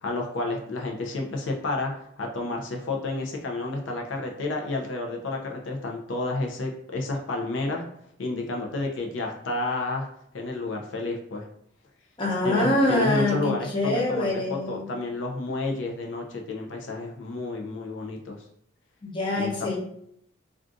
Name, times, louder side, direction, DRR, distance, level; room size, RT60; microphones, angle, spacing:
voice 1, 0.0-7.8 8.2-10.1 10.3-11.5 12.4-18.4 19.4-19.8, left 2 dB, 85° left, 1 dB, 0.5 m, -30 dB
voice 2, 12.2-14.9 19.0-19.8, left 1 dB, 25° left, -4 dB, 0.7 m, -25 dB
2.5 x 2.4 x 3.6 m, 0.71 s
head